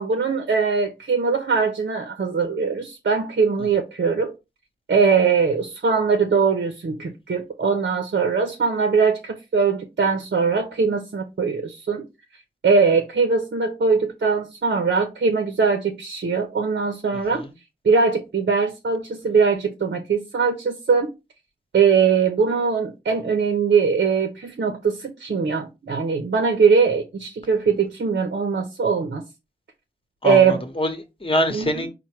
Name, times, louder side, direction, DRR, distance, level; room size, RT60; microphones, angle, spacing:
voice 1, 0.0-4.3 4.9-12.1 12.6-17.4 17.8-21.1 21.7-29.2 30.2-30.6 31.5-31.8, right 5 dB, 60° right, 0.7 m, -21 dB
voice 2, 30.2-31.9, equal, 25° left, 1.1 m, -25 dB
4.4 x 2.2 x 4.4 m
cardioid pair, 50°, 20 cm